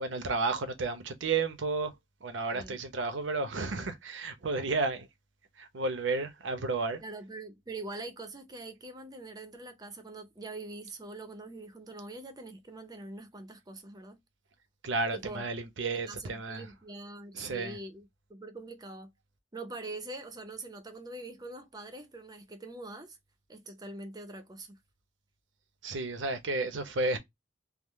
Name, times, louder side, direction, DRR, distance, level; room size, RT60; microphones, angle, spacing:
voice 1, 0.0-1.9 2.2-5.1 5.6-7.0 14.8-16.7 17.3-17.8 25.8-27.2, right 3 dB, 80° right, 0.7 m, -32 dB
voice 2, 7.0-14.2 15.1-15.4 15.8-19.1 19.5-23.2 23.5-24.8, right 2 dB, 20° right, 0.6 m, -43 dB
3.6 x 2.0 x 3.0 m
head